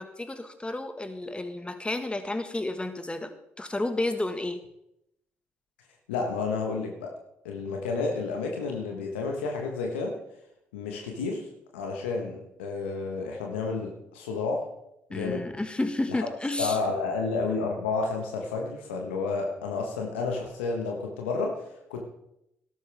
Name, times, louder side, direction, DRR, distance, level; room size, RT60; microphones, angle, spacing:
voice 1, 0.0-3.3 3.6-4.6 15.1-16.8, left 2 dB, 15° left, 8 dB, 1.6 m, -31 dB
voice 2, 6.1-7.2 7.4-10.2 10.7-11.4 11.7-14.7 15.1-15.5 16.1-16.2 16.6-22.0, left 4 dB, 85° left, 1 dB, 1.4 m, -31 dB
13.0 x 11.5 x 3.5 m, 0.81 s
hypercardioid pair, 45°, 6 cm